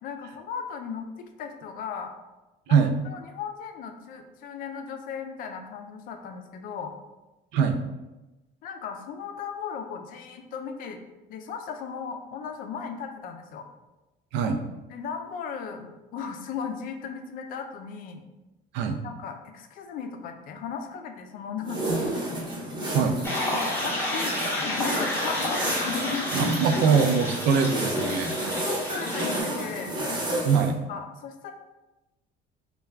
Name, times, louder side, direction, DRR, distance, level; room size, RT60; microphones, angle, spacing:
voice 1, 0.0-2.1 2.7-6.9 8.6-11.0 11.3-13.7 14.9-18.2 19.0-22.2 23.0-23.1 23.8-26.5 26.8-27.0 28.6-30.0 30.9-31.5, left 6 dB, 45° left, 5 dB, 0.4 m, -36 dB
sound 1, 21.6-30.7, right 1 dB, 20° right, 0.8 m, -31 dB
voice 2, 22.9-23.2 26.3-28.3 30.4-30.8, right 6 dB, 65° right, 5 dB, 0.4 m, -22 dB
sound 2, 23.2-29.4, left 1 dB, 10° left, 0.6 m, -31 dB
3.4 x 2.3 x 3.2 m, 1.0 s
cardioid pair, 180°, 19 cm